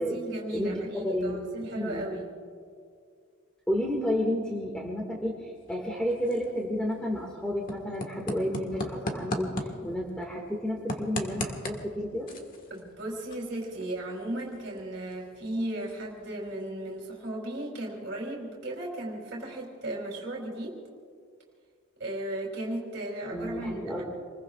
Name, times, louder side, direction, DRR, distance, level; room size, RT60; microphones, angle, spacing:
voice 1, 0.0-2.3 12.7-20.8 22.0-24.0, right 1 dB, 60° right, -2 dB, 3.1 m, -35 dB
voice 2, 0.5-2.1 3.7-12.3 23.3-24.0, equal, 5° left, -3 dB, 1.9 m, -31 dB
sound 1, 5.5-17.2, left 1 dB, 40° left, 1.6 m, -40 dB
27.5 x 21.5 x 2.4 m, 2.2 s
head